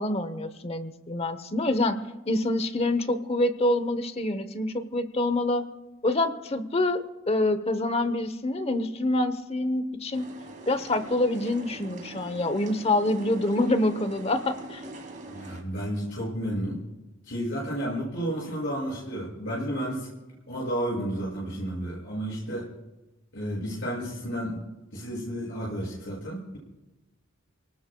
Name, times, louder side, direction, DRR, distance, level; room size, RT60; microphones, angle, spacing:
voice 1, 0.0-2.0 2.3-5.7 6.0-10.3 10.7-14.8, left 2 dB, 30° left, 11 dB, 0.9 m, -26 dB
sound 1, 10.1-15.6, right 2 dB, 40° right, 2.3 m, -43 dB
voice 2, 15.3-16.8 17.2-20.1 20.5-22.7 23.3-24.6 24.9-26.6, equal, 65° left, -5 dB, 6.8 m, -32 dB
28.5 x 19.0 x 2.3 m, 1.1 s
head